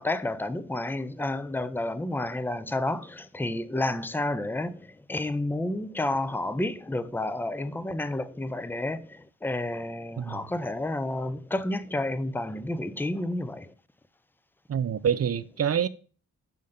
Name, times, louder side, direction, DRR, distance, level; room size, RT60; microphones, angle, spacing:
voice 1, 0.0-13.7, left 2 dB, 5° left, 0.5 m, -30 dB
voice 2, 14.7-15.9, right 8 dB, 45° right, 0.5 m, -26 dB
6.4 x 5.9 x 3.5 m
wide cardioid pair, 110°, 34 cm